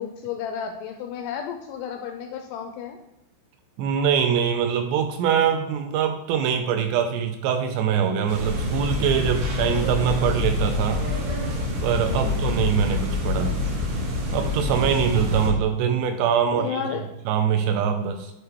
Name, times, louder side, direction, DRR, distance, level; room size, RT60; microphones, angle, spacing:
voice 1, 0.0-3.0 12.1-12.4 14.9-15.0 16.5-17.1, left 8 dB, 85° left, 5 dB, 2.4 m, -32 dB
voice 2, 3.8-11.0 11.8-13.5 14.3-17.0 17.3-18.3, right 8 dB, 80° right, 6 dB, 2.6 m, -23 dB
sound 1, 8.3-15.5, right 2 dB, 60° right, 1.7 m, -34 dB
sound 2, 8.4-15.5, left 3 dB, 65° left, 1.4 m, -27 dB
10.0 x 3.7 x 4.4 m, 0.88 s
omnidirectional pair, 5.3 m